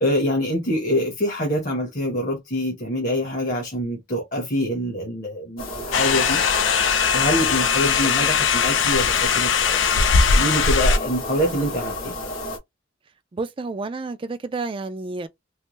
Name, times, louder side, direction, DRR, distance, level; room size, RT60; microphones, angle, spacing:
voice 1, 0.0-6.4 7.1-9.9 10.3-12.1, equal, 40° left, 0.9 m, -25 dB
sound 1, 5.6-12.6, left 1 dB, 90° left, 1.0 m, -32 dB
sound 2, 5.9-11.0, left 6 dB, 65° left, 0.5 m, -20 dB
voice 2, 13.3-15.3, right 3 dB, 25° right, 0.3 m, -30 dB
3.2 x 2.1 x 3.0 m
head